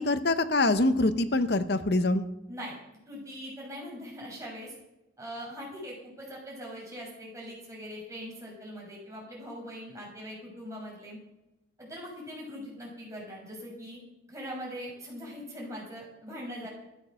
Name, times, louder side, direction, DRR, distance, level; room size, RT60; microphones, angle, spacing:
voice 1, 0.0-2.2, left 2 dB, 60° left, 11 dB, 0.9 m, -25 dB
voice 2, 3.1-4.7 5.2-11.2 11.8-14.0 14.3-16.7, equal, 15° right, -3 dB, 6.3 m, -41 dB
14.0 x 9.9 x 6.5 m, 0.92 s
head